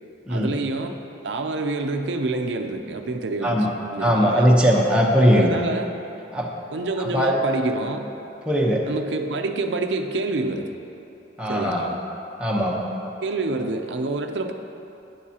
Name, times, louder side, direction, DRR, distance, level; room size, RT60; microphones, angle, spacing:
voice 1, 0.3-3.7 3.9-4.5 5.3-5.9 6.7-8.1 8.9-10.7 11.5-12.0 13.2-14.5, right 2 dB, 80° right, 5 dB, 0.5 m, -27 dB
voice 2, 4.0-5.6 6.3-6.5 7.0-7.4 8.5-8.9 11.4-11.8 12.4-12.8, equal, 5° right, -3 dB, 0.9 m, -19 dB
12.0 x 9.3 x 2.9 m, 2.9 s
head